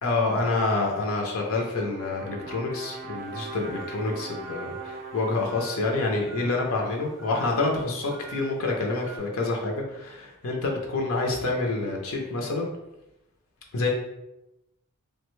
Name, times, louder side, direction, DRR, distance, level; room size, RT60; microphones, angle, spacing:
voice 1, 0.0-12.7 13.7-13.9, left 3 dB, 70° left, 0 dB, 0.5 m, -27 dB
sound 1, 1.7-8.0, right 3 dB, 40° right, 0.4 m, -41 dB
sound 2, 3.2-9.2, right 4 dB, ahead, 0.6 m, -47 dB
3.3 x 2.2 x 3.0 m, 0.93 s
head